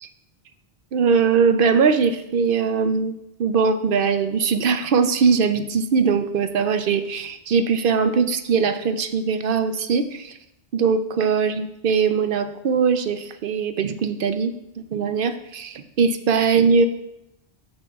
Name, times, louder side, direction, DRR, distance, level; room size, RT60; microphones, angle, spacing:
voice 1, 0.9-3.1 3.4-10.4 10.7-14.5 14.9-16.9, right 5 dB, 65° right, 9 dB, 0.7 m, -21 dB
14.0 x 6.5 x 2.3 m, 0.86 s
omnidirectional pair, 1.1 m